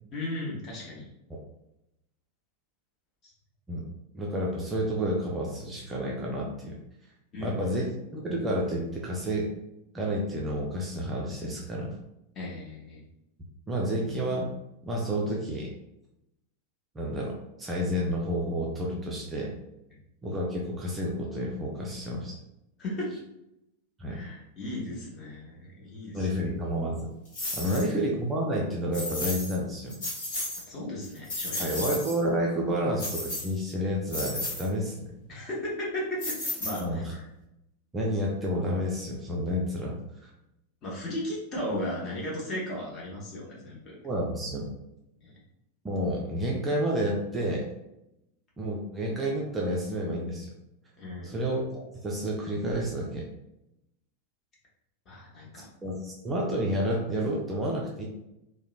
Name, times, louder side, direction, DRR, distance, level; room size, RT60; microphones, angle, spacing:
voice 1, 0.1-1.1 3.2-3.3 7.3-7.7 12.3-13.0 22.8-23.1 24.1-26.3 27.6-27.8 30.6-31.6 35.3-37.2 40.8-44.0 45.2-45.3 51.0-51.4 55.1-55.7, left 1 dB, 30° left, -4 dB, 0.9 m, -36 dB
voice 2, 4.1-6.8 7.4-9.5 9.9-11.9 13.7-14.5 14.8-15.7 17.0-17.3 17.6-19.5 20.2-22.4 24.0-24.2 26.1-27.1 27.5-30.0 31.6-35.1 36.8-37.2 37.9-40.3 44.0-44.7 45.8-47.7 48.6-50.6 51.2-53.3 55.8-58.1, equal, 15° right, -3 dB, 0.4 m, -30 dB
sound 1, 27.3-27.9 28.9-29.6 29.9-30.6 31.0-32.2 33.0-33.7 34.1-34.7 36.2-37.1, left 1 dB, 55° left, 1.1 m, -33 dB
2.9 x 2.1 x 2.3 m, 0.86 s
figure-of-eight pair, 90°, 0 cm